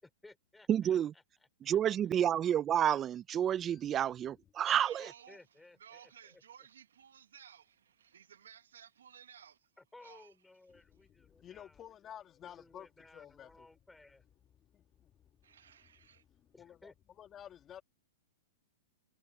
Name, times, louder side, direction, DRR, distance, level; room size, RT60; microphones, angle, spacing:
voice 1, 0.0-1.8 5.0-6.7 9.8-11.8 12.4-14.2 16.5-16.9, left 2 dB, 5° left, 4.8 m, -59 dB
voice 2, 0.7-1.1 1.7-5.1, right 10 dB, 25° right, 0.4 m, -30 dB
voice 3, 3.6-4.5 10.7-13.7 14.4-17.8, left 10 dB, 25° left, 2.7 m, -54 dB
voice 4, 4.7-5.4 5.8-9.6 10.0-10.3 15.4-16.2, right 8 dB, 85° right, 1.1 m, -56 dB
hypercardioid pair, 140°, 0 cm